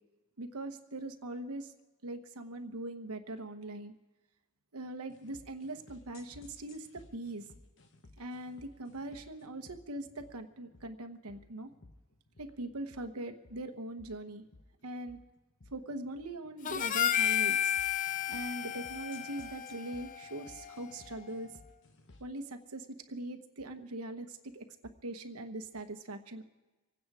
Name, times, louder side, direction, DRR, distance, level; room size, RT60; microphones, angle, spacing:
voice 1, 0.4-1.7 2.0-3.9 4.7-7.4 8.2-11.7 12.4-14.4 14.8-15.2 15.7-17.7 18.0-21.5 22.2-24.7 25.0-26.4, right 2 dB, 90° right, 7 dB, 1.1 m, -41 dB
sound 1, 5.1-22.4, left 2 dB, 55° left, 1.1 m, -59 dB
Harmonica, 16.7-21.1, left 10 dB, 35° left, 0.4 m, -33 dB
25.0 x 9.5 x 4.8 m, 1.2 s
head